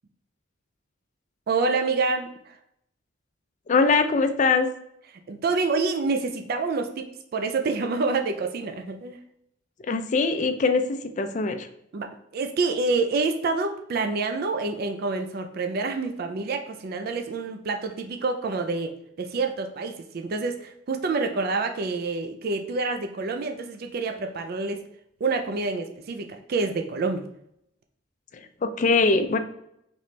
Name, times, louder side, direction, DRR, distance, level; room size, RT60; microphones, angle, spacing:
voice 1, 1.5-2.3 5.3-7.1 7.3-9.2 11.9-24.9 25.2-27.2, right 3 dB, 50° right, 5 dB, 0.4 m, -27 dB
voice 2, 3.7-4.7 9.8-11.7 28.3-29.4, left 4 dB, 40° left, 7 dB, 0.4 m, -22 dB
4.1 x 3.1 x 3.1 m, 0.75 s
head